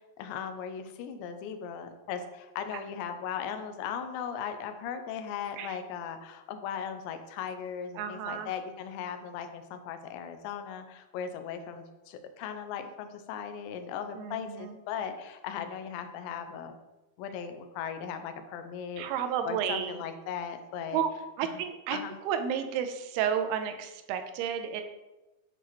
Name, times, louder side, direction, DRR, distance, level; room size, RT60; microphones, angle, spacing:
voice 1, 0.2-16.8 17.2-21.0 21.4-21.6 21.9-22.1, left 7 dB, 80° left, 7 dB, 2.2 m, -38 dB
voice 2, 8.0-8.5 14.2-14.8 19.0-20.0 20.9-21.1 21.4-24.8, right 8 dB, 90° right, 8 dB, 2.6 m, -32 dB
8.0 x 4.6 x 3.0 m, 1.1 s
omnidirectional pair, 4.5 m